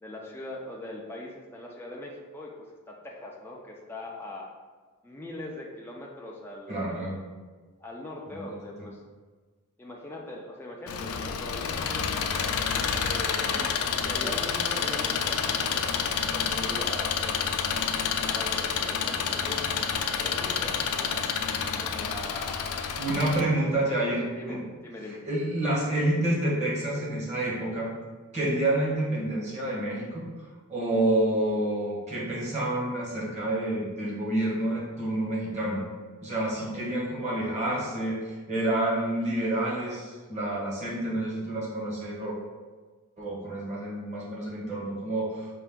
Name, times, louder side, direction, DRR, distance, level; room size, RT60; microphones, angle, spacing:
voice 1, 0.0-4.5 5.0-6.9 7.8-9.0 9.8-12.0 12.9-17.5 18.2-19.7 20.1-21.4 21.8-22.9 23.6-23.7 24.3-25.2 36.7-36.8, left 1 dB, 10° left, -2 dB, 0.4 m, -41 dB
voice 2, 6.7-7.2 8.3-8.4 23.0-24.6 25.2-27.9 28.3-30.3 30.7-35.8 36.2-42.3 43.2-45.5, right 1 dB, 30° right, -5 dB, 1.2 m, -28 dB
Engine, 10.9-23.4, left 6 dB, 85° left, 0.4 m, -29 dB
5.6 x 2.5 x 3.6 m, 1.4 s
head